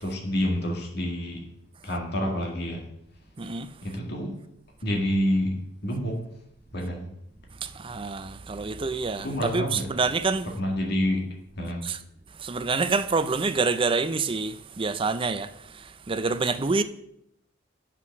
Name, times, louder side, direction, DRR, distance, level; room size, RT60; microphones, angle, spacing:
voice 1, 0.0-1.4 1.8-2.8 3.8-4.4 4.8-6.2 6.7-7.1 9.2-9.9 10.6-11.2 11.6-11.8, equal, 55° left, 1.9 m, -28 dB
voice 2, 3.4-3.7 7.6-10.5 11.8-12.0 12.3-16.8, right 4 dB, 25° right, 0.5 m, -27 dB
7.9 x 5.9 x 6.2 m
head